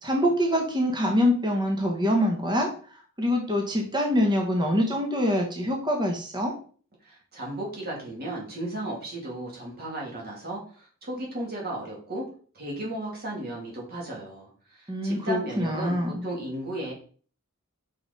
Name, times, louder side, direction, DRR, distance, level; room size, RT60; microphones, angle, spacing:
voice 1, 0.0-2.7 3.2-6.5 14.9-16.3, equal, 20° right, 1 dB, 1.1 m, -25 dB
voice 2, 7.0-12.3 12.5-16.9, right 1 dB, 45° right, -3 dB, 2.6 m, -35 dB
5.5 x 5.4 x 4.1 m, 0.43 s
head